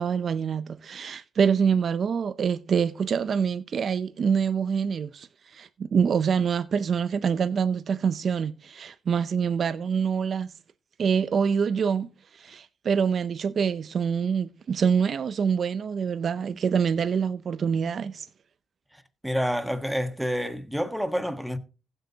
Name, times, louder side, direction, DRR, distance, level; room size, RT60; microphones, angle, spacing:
voice 1, 0.0-10.5 11.0-12.1 12.3-18.3, right 6 dB, 50° right, 0.6 m, -25 dB
voice 2, 19.2-21.6, equal, 5° right, 1.3 m, -28 dB
15.5 x 8.0 x 2.8 m
cardioid pair, 90°, 0 cm